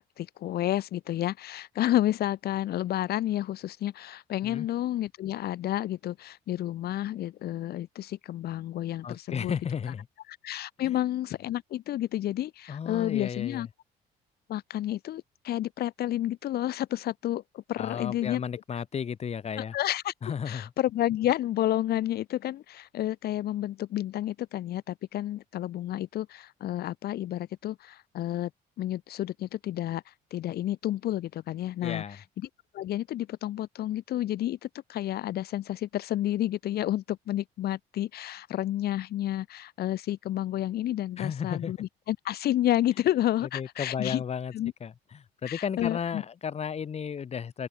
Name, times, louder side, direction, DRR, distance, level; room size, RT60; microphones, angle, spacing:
voice 1, 0.0-9.5 10.4-13.7 14.5-18.4 19.6-20.1 20.5-28.5 28.8-30.0 30.3-32.0 32.7-44.2 44.5-44.7 45.5-46.2, left 13 dB, 70° left, 7.8 m, -30 dB
voice 2, 9.0-10.1 10.8-10.9 12.7-13.7 17.8-19.7 20.2-20.7 31.8-32.2 41.2-41.7 43.4-44.5 44.8-47.7, left 7 dB, 40° left, 3.0 m, -34 dB
open air
cardioid pair, 110°, 17 cm